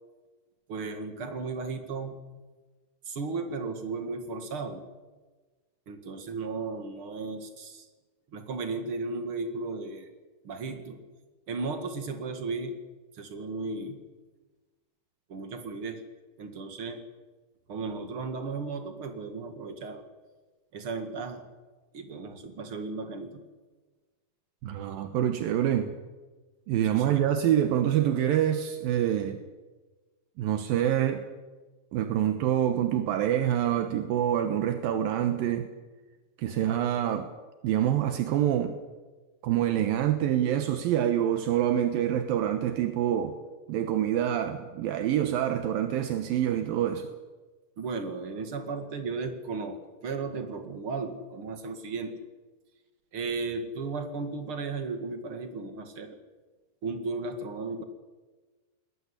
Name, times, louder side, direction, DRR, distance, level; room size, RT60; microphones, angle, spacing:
voice 1, 0.7-2.2 3.1-4.8 5.9-7.9 8.3-10.1 10.4-11.0 11.5-12.8 13.1-14.0 15.3-16.0 16.4-17.0 17.7-20.0 20.7-21.5 21.9-23.4 26.9-27.2 47.8-52.2 53.1-56.2 56.8-57.8, right 4 dB, 45° right, 7 dB, 1.7 m, -35 dB
voice 2, 24.6-25.9 26.7-29.4 30.4-31.2 31.9-35.7 36.4-37.3 37.6-38.7 39.4-43.4 43.7-47.1, right 11 dB, 70° right, 7 dB, 2.3 m, -26 dB
20.5 x 18.0 x 9.9 m, 1.3 s
omnidirectional pair, 5.5 m